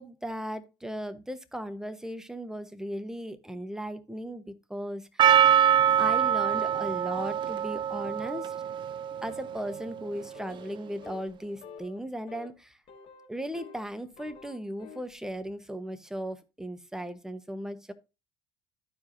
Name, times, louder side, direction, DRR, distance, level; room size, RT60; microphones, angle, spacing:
voice 1, 0.0-5.4 6.0-8.5 9.2-12.8 13.3-17.9, equal, 5° right, 1.1 m, -37 dB
Percussion, 5.2-10.2, right 9 dB, 40° right, 0.4 m, -25 dB
sound 1, 10.3-10.8 11.0-11.3 11.6-12.0 12.3-12.5 12.9-13.9 14.1-15.1, left 6 dB, 55° left, 1.5 m, -48 dB
13.0 x 4.8 x 2.6 m
hypercardioid pair, 70°, 12 cm